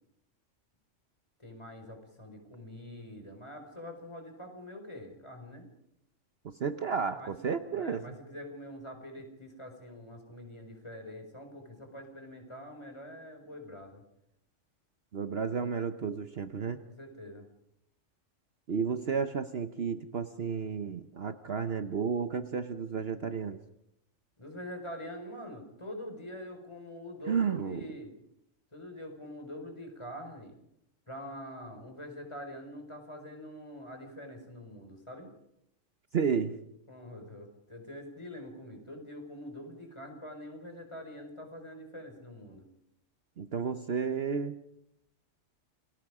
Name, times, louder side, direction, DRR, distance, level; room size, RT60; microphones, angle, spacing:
voice 1, 1.4-5.7 7.2-7.3 7.7-14.0 15.3-15.6 17.0-17.4 24.4-28.1 28.7-30.6 31.1-35.3 36.9-42.7, left 1 dB, 20° left, 4 dB, 4.8 m, -45 dB
voice 2, 6.4-8.1 15.1-16.8 18.7-23.6 27.3-27.9 36.1-36.5 43.4-44.6, right 6 dB, 55° right, 9 dB, 1.1 m, -32 dB
28.5 x 20.0 x 4.9 m, 0.78 s
omnidirectional pair, 1.3 m